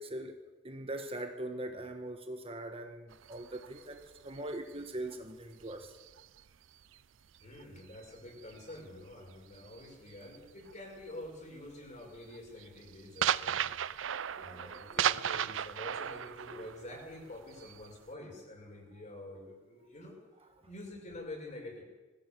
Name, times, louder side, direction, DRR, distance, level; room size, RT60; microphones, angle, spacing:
voice 1, 0.0-5.9 14.3-15.2, right 1 dB, 30° right, 1.4 m, -42 dB
sound 1, 3.1-7.0 7.3-10.7 11.0-11.4 11.7-18.1, right 9 dB, 80° right, 0.5 m, -36 dB
voice 2, 7.4-13.9 14.4-20.2 20.7-21.8, left 1 dB, 40° left, 6.2 m, -47 dB
20.5 x 15.5 x 8.4 m
head